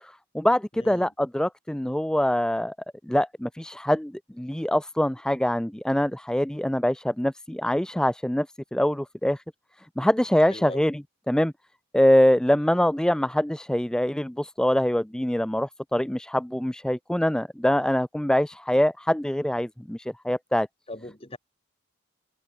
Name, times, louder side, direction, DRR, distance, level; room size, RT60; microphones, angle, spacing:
voice 1, 0.0-2.7 3.1-4.1 4.4-8.5 8.7-9.4 10.0-11.5 11.9-20.7, left 1 dB, 5° left, 0.3 m, -24 dB
voice 2, 0.7-1.1 10.5-10.8 20.9-21.4, left 1 dB, 30° left, 4.2 m, -39 dB
head